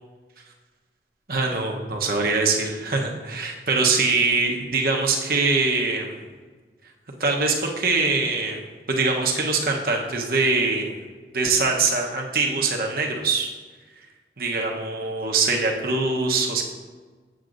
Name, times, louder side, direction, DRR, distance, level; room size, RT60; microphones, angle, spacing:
voice 1, 1.3-6.2 7.2-8.6 8.9-11.0 11.3-13.5 14.4-16.6, right 3 dB, 55° right, 1 dB, 0.9 m, -23 dB
8.0 x 7.7 x 2.5 m, 1.4 s
head